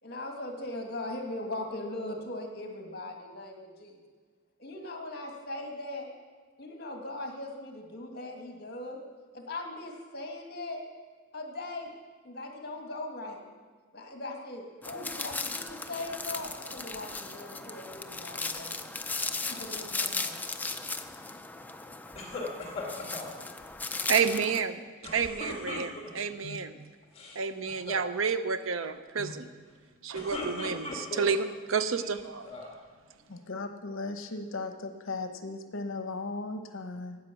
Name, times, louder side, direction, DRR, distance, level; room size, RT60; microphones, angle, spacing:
voice 1, 0.0-4.0 4.6-6.1 6.6-9.0 9.3-10.8 11.3-11.9 12.2-13.4 13.9-18.9 19.5-20.4, left 2 dB, 50° left, 2 dB, 1.8 m, -39 dB
sound 1, 14.8-24.6, left 3 dB, 10° left, 0.4 m, -37 dB
sound 2, 22.2-23.3 25.0-26.3 27.0-27.4 27.7-28.1 29.9-31.4 32.0-32.8, left 2 dB, 30° left, 1.8 m, -38 dB
voice 2, 24.1-24.8 25.1-26.9 27.4-29.5 30.0-32.5, right 6 dB, 75° right, 11 dB, 0.7 m, -30 dB
voice 3, 33.3-37.2, left 3 dB, 70° left, 7 dB, 0.9 m, -37 dB
9.7 x 8.9 x 7.0 m, 1.4 s
head